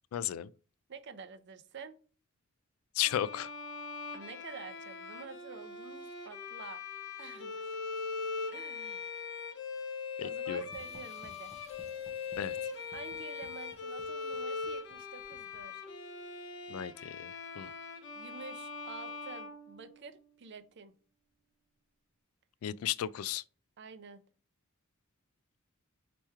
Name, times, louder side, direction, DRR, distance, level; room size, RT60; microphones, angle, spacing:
voice 1, 0.1-0.5 3.0-3.5 10.2-10.6 12.4-12.6 16.7-17.3 17.6-17.7 22.6-23.4, left 11 dB, 85° left, 0.3 m, -34 dB
voice 2, 0.9-2.0 4.1-6.8 7.2-7.6 8.5-9.2 10.2-11.5 12.9-15.8 18.1-20.9 23.8-24.2, right 5 dB, 55° right, 0.6 m, -49 dB
Bowed string instrument, 3.0-20.2, left 5 dB, 60° left, 1.0 m, -41 dB
sound 1, 10.7-15.9, left 1 dB, 35° left, 1.2 m, -58 dB
4.4 x 3.0 x 3.4 m
head